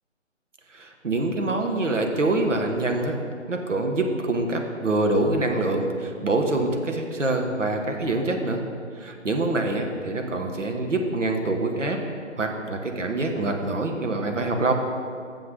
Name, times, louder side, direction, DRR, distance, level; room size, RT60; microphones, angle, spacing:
voice 1, 0.7-3.2 3.5-8.6 9.0-12.0 12.4-14.7, right 2 dB, 70° right, 3 dB, 1.3 m, -25 dB
6.9 x 6.4 x 6.5 m, 2.2 s
figure-of-eight pair, 150°, 39 cm